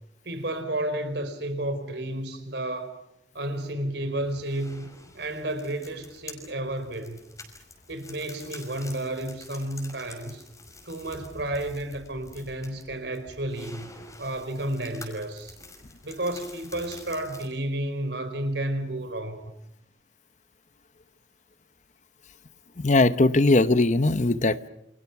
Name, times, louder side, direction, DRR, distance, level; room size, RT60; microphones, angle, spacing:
voice 1, 0.2-3.0 3.3-4.9 5.1-7.2 7.9-10.4 10.8-13.9 14.2-15.5 16.0-19.5, right 1 dB, 65° right, 4.6 m, -31 dB
sound 1, 4.2-17.5, left 2 dB, 20° left, 5.5 m, -48 dB
voice 2, 22.8-24.7, left 2 dB, 40° left, 0.9 m, -20 dB
29.5 x 28.0 x 6.1 m
head